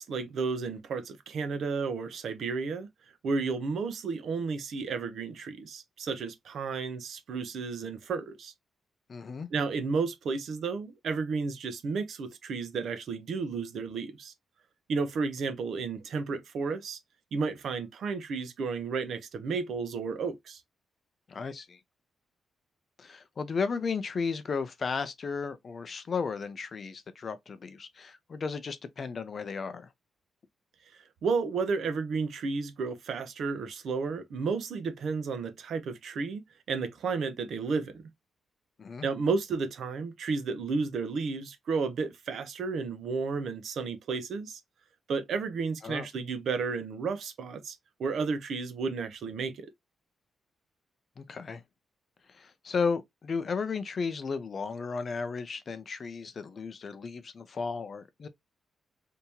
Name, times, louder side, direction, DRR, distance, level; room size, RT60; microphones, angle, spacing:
voice 1, 0.0-2.9 3.2-8.5 9.5-14.3 14.9-17.0 17.3-20.6 31.2-36.4 36.7-38.0 39.0-44.6 45.1-49.7, right 4 dB, 60° right, 0.7 m, -32 dB
voice 2, 9.1-9.5 21.3-21.8 23.0-29.9 38.8-39.1 45.8-46.1 51.2-51.6 52.3-58.3, left 5 dB, 35° left, 0.5 m, -34 dB
3.4 x 2.8 x 2.9 m
wide cardioid pair, 165°, 0 cm